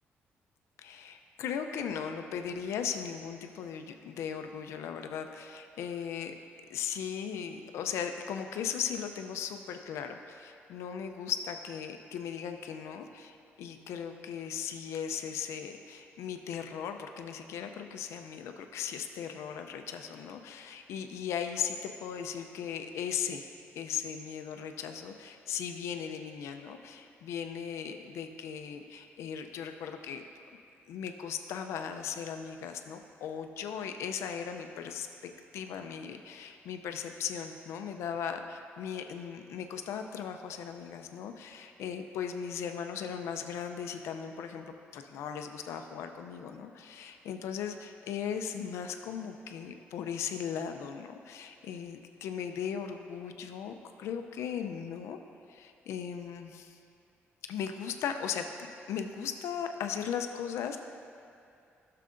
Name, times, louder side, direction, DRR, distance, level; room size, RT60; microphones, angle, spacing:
voice 1, 0.8-6.3 6.7-23.5 23.8-30.3 30.9-55.2 55.5-56.8 57.5-60.8, left 7 dB, 85° left, 6 dB, 0.4 m, -37 dB
13.0 x 6.6 x 2.5 m, 2.6 s
cardioid pair, 170°, 5 cm